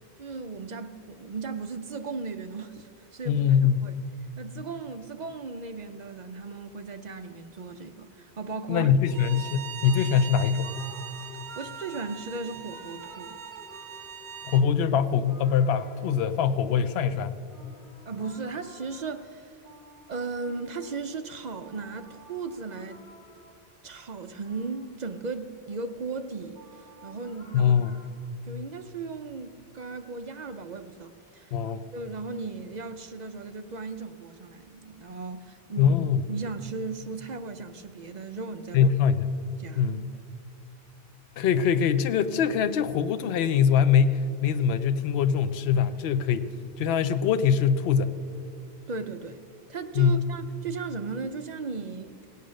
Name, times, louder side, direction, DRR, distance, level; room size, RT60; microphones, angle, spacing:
voice 1, 0.2-4.0 4.4-8.9 11.6-13.4 18.1-19.6 20.1-23.0 23.8-28.0 28.5-31.5 31.9-35.9 36.3-38.9 39.6-39.9 48.9-49.4 49.7-52.2, right 4 dB, 50° right, 0.6 m, -36 dB
voice 2, 3.3-3.8 8.7-10.7 14.5-17.4 27.5-28.0 31.5-31.8 35.8-36.3 38.7-39.4 39.8-40.1 41.4-46.5 46.8-48.2 50.0-50.2, left 7 dB, 75° left, 0.8 m, -23 dB
Bowed string instrument, 9.1-14.6, right 8 dB, 85° right, 0.8 m, -41 dB
sound 1, 9.8-16.8 17.4-23.8 24.2-25.4 25.8-28.1, equal, 50° left, 2.2 m, -52 dB
18.0 x 8.3 x 6.3 m
omnidirectional pair, 1.1 m